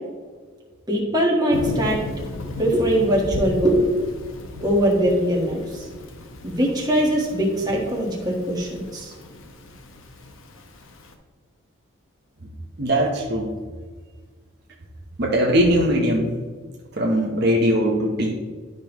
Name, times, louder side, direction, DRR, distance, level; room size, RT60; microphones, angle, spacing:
voice 1, 0.9-2.0 2.6-3.9 4.6-5.8 6.4-9.1, equal, 20° right, -3 dB, 1.5 m, -21 dB
Thunder / Rain, 1.5-11.1, left 1 dB, 70° left, 0.9 m, -35 dB
voice 2, 12.8-13.5 15.2-16.3 17.0-18.3, equal, 50° right, -2 dB, 1.1 m, -20 dB
11.5 x 5.2 x 3.1 m, 1.5 s
head